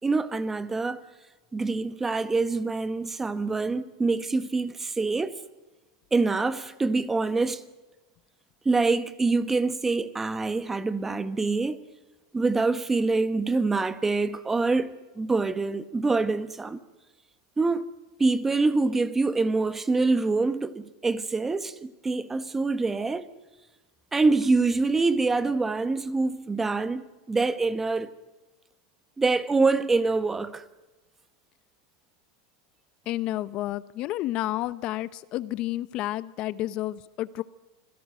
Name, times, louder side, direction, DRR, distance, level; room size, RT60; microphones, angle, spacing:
voice 1, 0.0-1.0 1.5-5.3 6.1-7.6 8.6-11.8 12.3-16.8 17.6-17.9 18.2-23.3 24.1-28.1 29.2-30.6, right 3 dB, 15° right, 1.2 m, -25 dB
voice 2, 33.1-37.4, left 15 dB, 45° left, 0.8 m, -30 dB
26.5 x 17.0 x 7.7 m
supercardioid pair, 125°, 2 cm